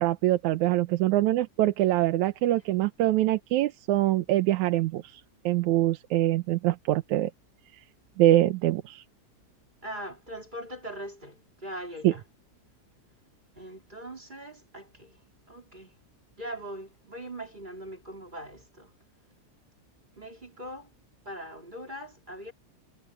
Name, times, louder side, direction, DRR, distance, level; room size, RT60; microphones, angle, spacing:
voice 1, 0.0-5.2 5.5-7.3 8.2-9.0 12.0-12.1, right 15 dB, 90° right, 2.3 m, -24 dB
voice 2, 9.8-12.2 13.6-15.2 15.5-15.9 16.4-18.9 20.2-20.9 21.3-22.5, equal, 15° right, 3.7 m, -41 dB
omnidirectional pair, 3.3 m